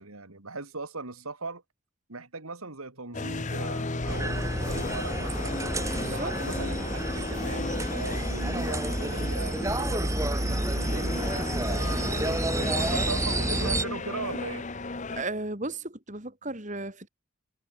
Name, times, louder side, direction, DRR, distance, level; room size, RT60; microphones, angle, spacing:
voice 1, 0.0-1.6 2.1-5.6 6.1-12.1 12.6-14.7, right 3 dB, 85° right, 3.0 m, -39 dB
sound 1, 3.1-15.2, left 3 dB, 35° left, 1.0 m, -35 dB
sound 2, 4.1-13.8, right 1 dB, 15° right, 2.1 m, -29 dB
voice 2, 5.9-6.3 12.6-12.7 15.1-17.1, right 2 dB, 35° right, 3.4 m, -35 dB
head